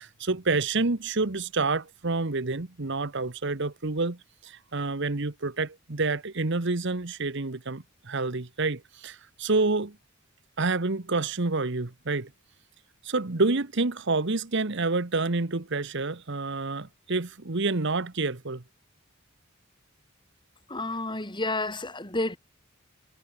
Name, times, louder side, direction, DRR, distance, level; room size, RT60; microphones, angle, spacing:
voice 1, 0.0-10.0 10.6-12.3 13.0-18.6, right 3 dB, 60° right, 1.3 m, -28 dB
voice 2, 20.7-22.4, left 2 dB, 25° left, 6.1 m, -30 dB
head